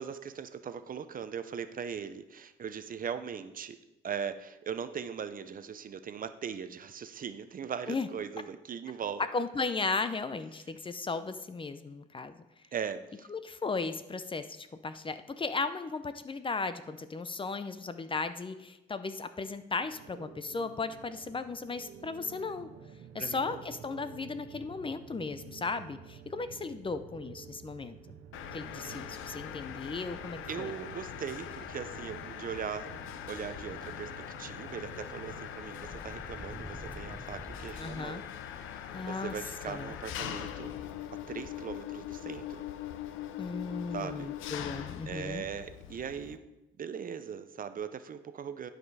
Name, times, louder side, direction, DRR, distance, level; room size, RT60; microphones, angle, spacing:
voice 1, 0.0-3.8 4.0-9.2 12.7-13.3 23.2-23.6 30.5-32.9 33.3-38.2 38.5-40.7 41.3-42.7 43.9-44.3 45.1-46.4 46.8-48.7, right 7 dB, 45° right, 11 dB, 0.6 m, -39 dB
voice 2, 9.3-12.4 13.3-22.7 23.1-28.0 28.5-30.7 37.8-38.2 38.9-39.3 39.7-39.9 43.4-45.4, left 4 dB, 25° left, 11 dB, 0.6 m, -36 dB
sound 1, 19.8-35.5, right 7 dB, 80° right, 0.9 m, -51 dB
Mechanisms, 28.3-46.4, left 10 dB, 85° left, 0.6 m, -42 dB
sound 2, 34.9-41.7 42.0-42.1 43.2-43.3 43.6-43.8, right 1 dB, 10° right, 0.7 m, -50 dB
11.0 x 5.1 x 4.8 m, 0.96 s
cardioid pair, 90°, 20 cm